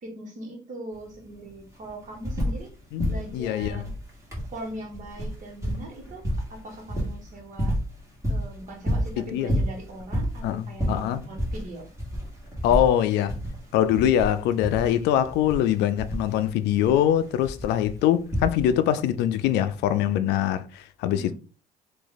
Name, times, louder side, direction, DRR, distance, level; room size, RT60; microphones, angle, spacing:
voice 1, 0.0-2.7 3.0-3.9 4.5-6.2 6.5-7.8 8.3-11.8 21.1-21.3, right 1 dB, 50° right, 1.5 m, -40 dB
sound 1, 0.9-1.0 1.3-2.7 3.0-19.0 20.0-20.1, equal, 20° right, 1.5 m, -30 dB
voice 2, 2.9-3.8 9.2-9.5 10.4-11.2 12.6-13.3 13.7-21.3, left 10 dB, 85° left, 0.4 m, -23 dB
3.0 x 2.6 x 3.9 m
cardioid pair, 110°, 17 cm